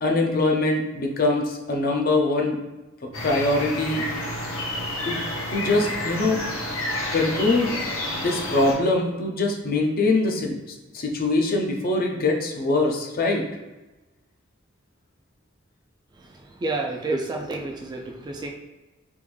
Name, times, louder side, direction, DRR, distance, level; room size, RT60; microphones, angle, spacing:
voice 1, 0.0-2.6 3.2-4.1 5.0-5.2 5.5-6.4 7.1-7.8 8.1-13.5, left 2 dB, 50° left, 2 dB, 0.6 m, -23 dB
sound 1, 3.1-8.7, left 1 dB, 85° left, 0.9 m, -30 dB
voice 2, 16.6-18.5, right 2 dB, 20° right, 1 dB, 0.3 m, -29 dB
3.5 x 2.5 x 3.2 m, 1.1 s
head